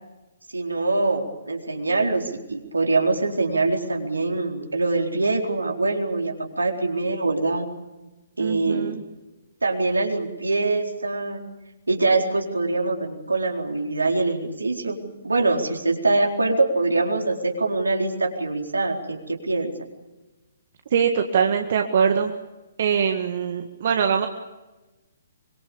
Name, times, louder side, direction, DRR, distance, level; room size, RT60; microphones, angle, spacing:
voice 1, 0.5-7.7 8.4-8.9 9.6-11.4 11.9-15.0 15.2-19.7, right 3 dB, 80° right, 1 dB, 4.2 m, -24 dB
voice 2, 8.4-9.0 20.9-22.3 22.8-24.3, right 7 dB, 50° right, 4 dB, 1.9 m, -22 dB
25.0 x 23.0 x 7.1 m, 1.1 s
figure-of-eight pair, 130°, 0 cm